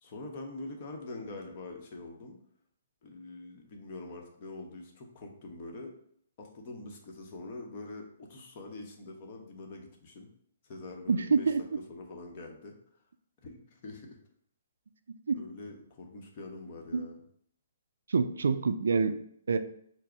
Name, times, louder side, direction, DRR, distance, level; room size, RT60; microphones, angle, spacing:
voice 1, 0.0-2.4 3.0-5.9 6.4-10.3 10.6-11.5 11.9-12.7 13.4-14.2 15.4-17.2, left 2 dB, 45° left, 2 dB, 0.9 m, -44 dB
voice 2, 11.1-11.6 15.3-15.4 16.9-17.1 18.1-19.6, right 5 dB, 70° right, 10 dB, 0.3 m, -27 dB
4.6 x 2.0 x 4.6 m, 0.66 s
figure-of-eight pair, 125°, 0 cm